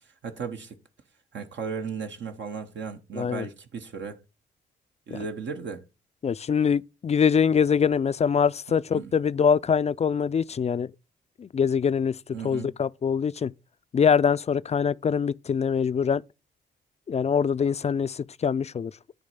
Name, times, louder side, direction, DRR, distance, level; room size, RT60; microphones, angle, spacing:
voice 1, 0.2-0.7 1.3-4.2 5.1-5.8 8.9-9.1 12.3-12.7, right 5 dB, 65° right, 1.0 m, -35 dB
voice 2, 3.1-3.5 5.1-5.2 6.2-10.9 11.4-12.2 12.4-13.5 13.9-16.2 17.1-18.9, left 6 dB, 30° left, 0.4 m, -24 dB
9.6 x 3.3 x 5.4 m
hypercardioid pair, 45°, 21 cm